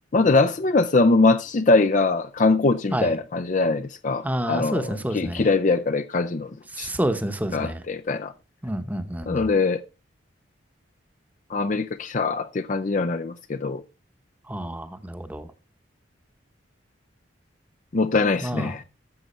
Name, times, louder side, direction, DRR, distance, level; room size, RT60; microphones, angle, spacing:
voice 1, 0.1-4.9 5.1-6.5 6.8-6.9 7.5-8.3 9.3-9.8 11.5-13.8 17.9-18.8, left 3 dB, 40° left, 0.5 m, -22 dB
voice 2, 4.2-5.5 6.7-7.8 8.6-9.5 14.5-15.5 18.4-18.7, right 1 dB, 10° right, 0.9 m, -29 dB
13.5 x 7.6 x 4.3 m
head